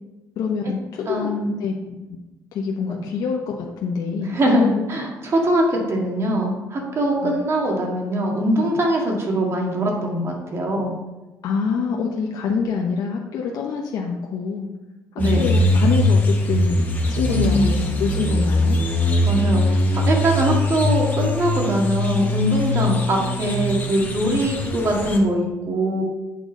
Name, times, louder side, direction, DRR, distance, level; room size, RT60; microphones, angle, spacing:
voice 1, 0.4-1.3 1.6-1.9 2.5-4.9 7.2-7.4 11.4-14.7 15.3-18.8, left 5 dB, 65° left, -1 dB, 0.9 m, -26 dB
voice 2, 1.1-1.5 4.3-10.9 15.2-15.5 17.3-17.7 19.3-26.0, right 1 dB, 40° right, 0 dB, 1.9 m, -22 dB
sound 1, 15.2-25.2, left 1 dB, 25° left, 1.3 m, -21 dB
8.6 x 3.7 x 5.3 m, 1.1 s
cardioid pair, 105°, 7 cm